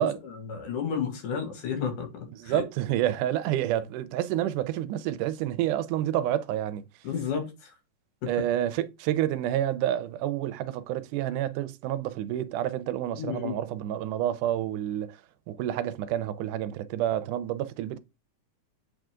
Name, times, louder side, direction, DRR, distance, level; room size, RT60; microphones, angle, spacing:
voice 1, 0.0-2.6 7.0-7.7 8.2-8.3 13.2-13.6, left 7 dB, 85° left, 3.6 m, -32 dB
voice 2, 2.4-6.8 8.3-15.2 15.5-18.0, right 12 dB, 90° right, 2.2 m, -29 dB
8.4 x 3.7 x 3.7 m
omnidirectional pair, 3.5 m